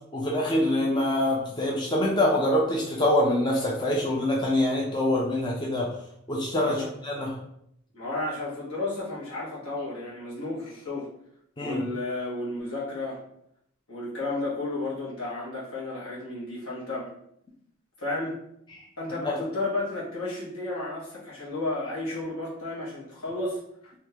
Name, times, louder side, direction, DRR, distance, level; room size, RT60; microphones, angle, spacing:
voice 1, 0.1-5.9 6.3-7.4 11.6-11.8 19.2-19.4, left 1 dB, 20° left, -3 dB, 0.4 m, -25 dB
voice 2, 6.6-6.9 7.9-11.1 11.6-13.2 13.9-17.1 18.0-18.3 19.0-23.6, left 2 dB, 75° left, -6 dB, 1.3 m, -32 dB
3.5 x 2.7 x 2.8 m, 0.72 s
head